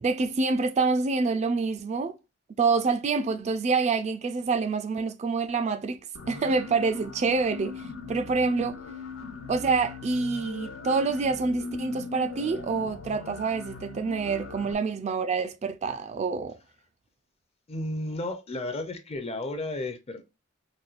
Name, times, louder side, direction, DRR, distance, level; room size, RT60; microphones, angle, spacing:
voice 1, 0.0-2.2 2.6-6.0 6.3-8.8 9.5-16.6, right 4 dB, 35° right, 0.3 m, -27 dB
sound 1, 6.1-14.7, left 4 dB, 80° left, 0.7 m, -40 dB
voice 2, 17.7-20.2, left 2 dB, 30° left, 0.6 m, -33 dB
4.2 x 2.2 x 2.4 m
head